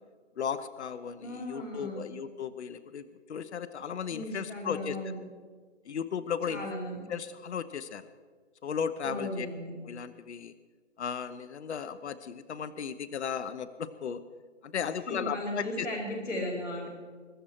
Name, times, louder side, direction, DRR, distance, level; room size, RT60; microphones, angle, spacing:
voice 1, 0.4-5.0 5.9-6.7 7.1-8.1 8.6-9.5 9.8-10.5 11.0-14.2 14.6-15.9, left 7 dB, 65° left, 13 dB, 1.0 m, -35 dB
voice 2, 1.2-2.0 4.1-5.2 6.5-7.0 9.0-9.7 15.1-16.9, left 1 dB, 85° left, -1 dB, 5.0 m, -36 dB
22.5 x 12.0 x 4.4 m, 1.5 s
hypercardioid pair, 155°, 36 cm